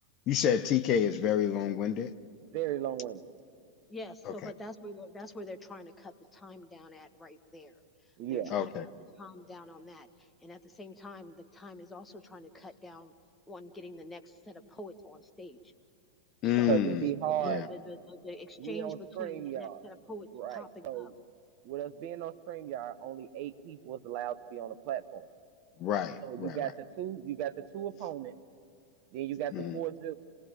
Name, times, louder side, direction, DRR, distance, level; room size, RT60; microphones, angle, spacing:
voice 1, 0.3-2.1 4.4-4.5 8.5-8.8 16.4-17.1 17.4-17.7 25.8-26.7 29.5-29.8, left 9 dB, 35° left, 11 dB, 0.7 m, -29 dB
voice 2, 2.4-3.2 8.2-8.5 16.7-17.6 18.6-19.9 20.3-21.1 21.6-25.3 26.2-28.3 29.1-30.1, right 12 dB, 45° right, 12 dB, 0.9 m, -36 dB
voice 3, 3.9-7.7 8.3-8.7 9.2-13.1 13.5-15.6 16.6-16.8 17.4-21.1, left 1 dB, 15° left, 8 dB, 1.5 m, -46 dB
27.5 x 17.5 x 9.0 m, 2.6 s
figure-of-eight pair, 90°, 0 cm